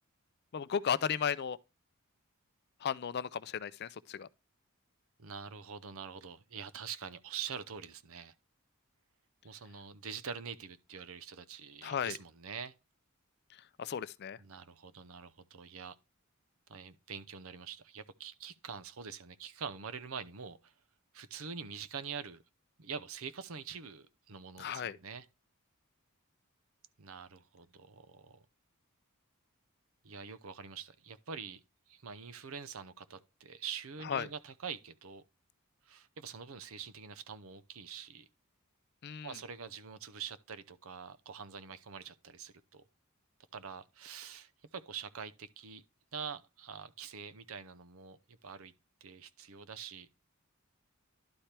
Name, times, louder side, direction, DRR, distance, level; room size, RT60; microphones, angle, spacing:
voice 1, 0.5-1.6 2.8-4.3 11.8-12.2 13.5-14.4 24.6-25.0 34.0-34.3 39.0-39.4, left 7 dB, 50° left, 0.4 m, -35 dB
voice 2, 5.2-8.3 9.4-12.7 14.4-16.0 16.7-20.7 21.1-22.4 22.8-25.3 27.0-28.4 30.0-31.6 31.9-35.2 35.9-38.3 39.2-42.8 43.5-45.8 46.1-48.7 49.0-50.1, right 6 dB, 70° right, 0.7 m, -45 dB
11.5 x 4.3 x 3.3 m
head